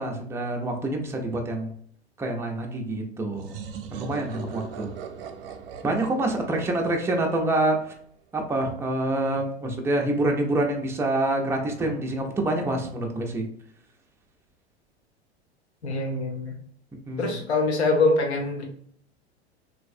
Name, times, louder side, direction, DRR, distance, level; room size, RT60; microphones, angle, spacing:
voice 1, 0.0-1.7 2.2-3.6 3.9-5.0 5.8-7.9 8.3-13.4 17.1-17.3, right 2 dB, 10° right, 2 dB, 0.4 m, -26 dB
sound 1, 3.3-7.9, right 7 dB, 60° right, 0.6 m, -40 dB
voice 2, 15.8-16.6 17.2-18.6, left 2 dB, 75° left, 1 dB, 1.0 m, -24 dB
3.1 x 2.7 x 2.5 m, 0.62 s
figure-of-eight pair, 90°, 33 cm